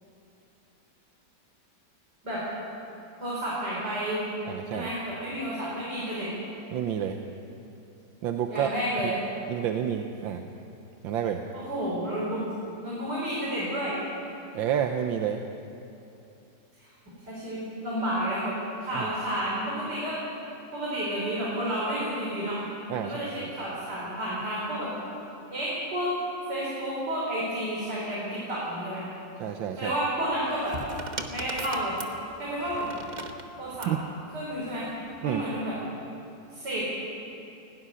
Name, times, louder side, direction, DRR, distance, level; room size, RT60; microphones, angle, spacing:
voice 1, 3.2-4.2 4.7-6.3 8.5-9.2 11.5-12.4 12.8-14.0 16.8-18.5 18.8-20.2 20.7-22.6 23.0-24.9 25.5-26.1 26.5-29.0 29.8-30.8 31.2-31.9 32.4-33.1 33.6-33.9 34.3-34.9 35.2-35.8 36.5-36.9, equal, 60° right, -7 dB, 5.5 m, -31 dB
voice 2, 4.5-4.9 6.7-7.2 8.2-8.7 9.0-9.1 9.5-10.4 11.0-11.4 14.5-15.4 18.9-19.1 22.9-23.5 29.4-29.9 33.9-34.0 35.2-35.4, right 9 dB, 85° right, 5 dB, 1.6 m, -29 dB
sound 1, 30.3-34.0 35.0-35.4, right 2 dB, 30° right, 1.0 m, -39 dB
17.5 x 17.0 x 9.8 m, 2.8 s
omnidirectional pair, 2.1 m